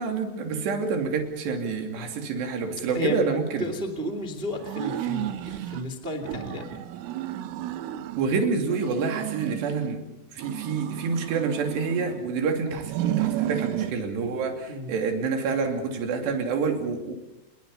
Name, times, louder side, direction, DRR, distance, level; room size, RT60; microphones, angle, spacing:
voice 1, 0.0-3.7 5.4-5.7 8.2-10.0 10.3-17.1, right 5 dB, 60° right, 4 dB, 4.6 m, -28 dB
voice 2, 3.6-6.7 14.7-14.9, equal, 40° right, 6 dB, 0.7 m, -32 dB
sound 1, 4.6-5.9 6.2-8.3 8.7-10.0 10.4-12.3 12.8-14.0, right 13 dB, 80° right, 3.5 m, -32 dB
29.0 x 21.5 x 5.5 m, 0.93 s
omnidirectional pair, 5.9 m